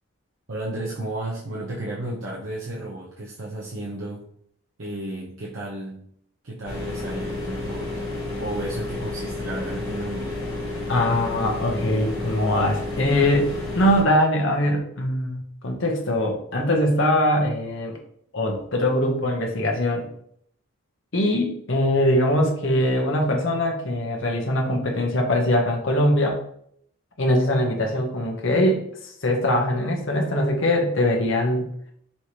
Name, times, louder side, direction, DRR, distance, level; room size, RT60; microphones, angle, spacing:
voice 1, 0.5-4.3 4.8-6.1 6.4-7.9 8.4-10.4, right 1 dB, 70° right, -5 dB, 0.8 m, -33 dB
sound 1, 6.6-14.0, left 2 dB, 25° left, 1.4 m, -31 dB
voice 2, 10.9-18.0 18.3-20.0 21.1-26.4 27.2-31.7, left 1 dB, 60° left, 1 dB, 1.0 m, -22 dB
5.6 x 3.2 x 2.9 m, 0.67 s
head